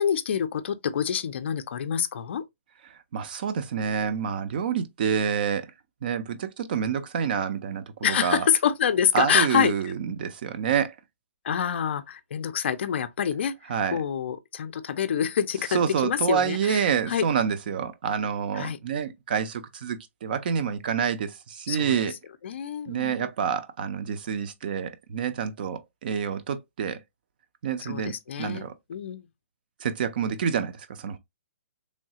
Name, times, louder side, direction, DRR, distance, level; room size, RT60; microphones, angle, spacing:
voice 1, 0.0-2.4 8.0-9.7 11.4-13.5 13.9-16.8 17.1-17.2 18.5-18.8 21.7-22.0 22.4-23.3 27.8-29.2, left 8 dB, 55° left, 0.4 m, -26 dB
voice 2, 3.1-5.7 6.0-8.5 9.1-10.9 13.7-14.0 15.7-22.1 22.9-27.0 27.6-28.7 29.8-31.2, right 7 dB, 40° right, 0.4 m, -28 dB
3.1 x 2.3 x 2.8 m
hypercardioid pair, 165°, 7 cm